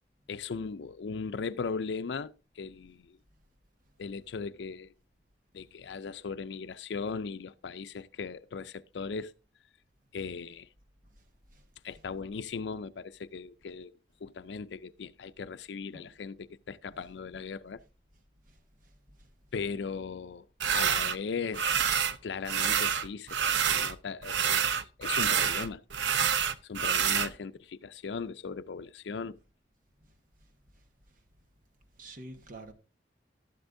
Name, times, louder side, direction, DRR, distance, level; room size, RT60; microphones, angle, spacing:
voice 1, 0.3-3.2 4.0-4.9 5.5-9.3 10.1-10.7 11.8-13.9 14.2-17.8 19.5-20.4 20.7-21.8 22.2-25.8 26.6-29.4, left 5 dB, 80° left, 0.4 m, -38 dB
sound 1, 20.6-21.2 21.5-22.2 22.4-23.9 24.2-27.3, right 7 dB, 85° right, 0.7 m, -27 dB
voice 2, 32.0-32.7, right 2 dB, 50° right, 1.3 m, -48 dB
12.5 x 11.5 x 2.6 m
head